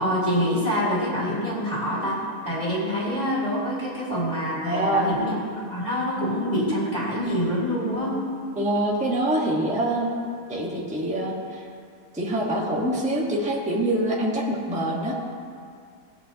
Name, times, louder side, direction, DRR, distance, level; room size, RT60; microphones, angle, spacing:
voice 1, 0.0-2.2 2.4-5.4 5.7-8.2, equal, 25° left, -8 dB, 3.2 m, -26 dB
voice 2, 4.6-5.2 8.6-10.1 10.5-11.7 12.1-15.1, right 1 dB, 5° right, -4 dB, 1.2 m, -25 dB
18.5 x 8.6 x 2.9 m, 2.3 s
omnidirectional pair, 1.7 m